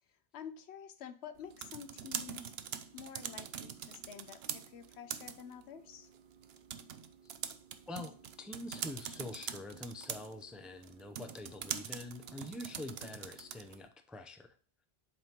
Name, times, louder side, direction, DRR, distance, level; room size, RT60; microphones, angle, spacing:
voice 1, 0.3-2.5 2.9-6.1, left 8 dB, 75° left, 11 dB, 1.0 m, -49 dB
sound 1, 1.4-13.9, right 9 dB, 70° right, 0.8 m, -44 dB
voice 2, 7.9-14.5, left 2 dB, ahead, 5 dB, 0.5 m, -45 dB
7.6 x 5.6 x 2.9 m, 0.43 s
omnidirectional pair, 1.1 m